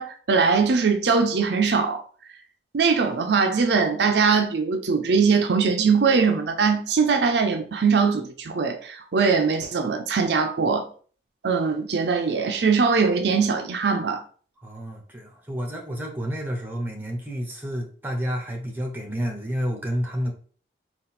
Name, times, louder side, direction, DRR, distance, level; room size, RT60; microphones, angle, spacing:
voice 1, 0.0-2.0 2.7-10.9 11.4-14.2, right 5 dB, 70° right, 0.5 m, -21 dB
voice 2, 14.6-20.3, equal, 10° right, 0.9 m, -30 dB
3.9 x 2.4 x 4.2 m
head